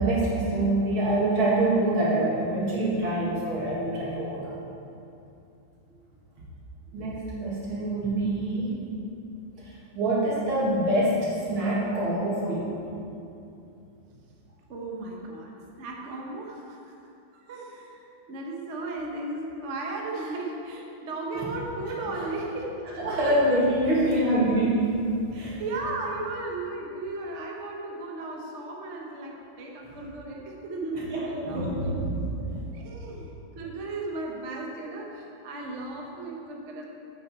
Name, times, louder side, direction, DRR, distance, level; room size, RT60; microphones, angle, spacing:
voice 1, 0.0-4.5 6.9-8.7 9.6-12.7 21.3-21.5 22.1-22.3 23.0-25.6 31.1-32.3 32.5-32.6, right 1 dB, 80° right, -6 dB, 2.9 m, -25 dB
voice 2, 14.7-17.0 17.3-22.8 23.3-23.4 23.9-24.1 25.3-32.0 32.4-36.9, right 2 dB, 45° right, -1 dB, 1.1 m, -36 dB
8.8 x 8.1 x 4.3 m, 2.7 s
omnidirectional pair, 2.2 m